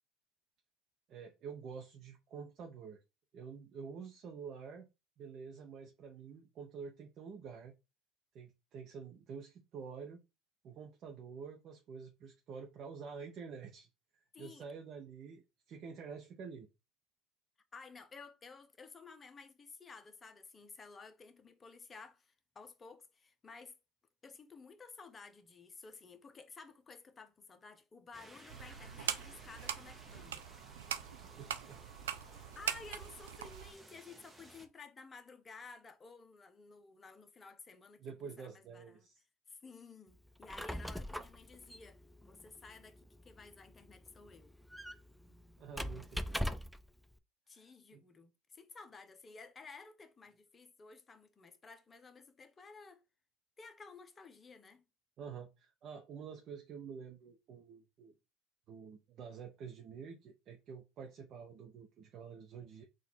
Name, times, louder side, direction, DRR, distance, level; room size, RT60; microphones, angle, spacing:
voice 1, 1.1-3.0 3.3-4.9 5.2-7.7 8.3-10.2 10.6-13.9 14.1-16.7 30.9-31.8 38.0-39.2 45.1-46.4 47.5-48.0 55.2-58.1 58.7-62.8, right 6 dB, 50° right, 0.8 m, -48 dB
voice 2, 14.3-14.7 17.7-23.8 24.2-30.5 32.2-39.1 39.5-44.6 47.5-53.0 53.6-54.8, left 4 dB, 30° left, 0.8 m, -54 dB
sound 1, 28.1-34.7, right 1 dB, 15° right, 1.0 m, -58 dB
sound 2, 28.5-33.7, right 9 dB, 90° right, 0.4 m, -42 dB
Squeak, 40.3-46.9, equal, ahead, 0.4 m, -42 dB
3.9 x 2.5 x 4.3 m
hypercardioid pair, 80°, 0 cm